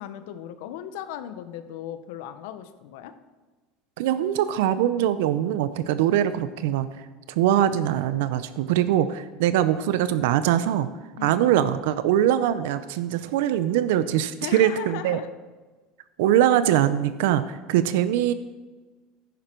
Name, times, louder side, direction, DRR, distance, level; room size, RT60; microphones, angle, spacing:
voice 1, 0.0-3.1 11.2-11.4 14.4-15.3, left 10 dB, 80° left, 11 dB, 0.8 m, -37 dB
voice 2, 4.0-6.9 7.3-10.9 11.2-15.2 16.2-18.3, right 11 dB, 85° right, 13 dB, 0.5 m, -22 dB
10.5 x 10.0 x 4.5 m, 1.3 s
cardioid pair, 150°, 0 cm